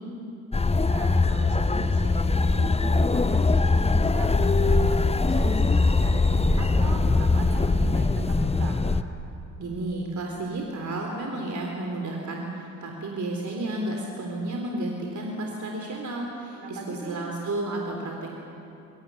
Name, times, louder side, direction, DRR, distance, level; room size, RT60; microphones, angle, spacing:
sound 1, 0.5-9.0, left 3 dB, 15° left, 1.0 m, -22 dB
voice 1, 0.8-6.2 6.6-8.8 16.6-17.2, right 2 dB, 60° right, 2 dB, 5.4 m, -39 dB
voice 2, 9.6-18.3, right 2 dB, 40° right, 1 dB, 3.7 m, -32 dB
28.5 x 22.5 x 7.1 m, 2.7 s
hypercardioid pair, 45°, 43 cm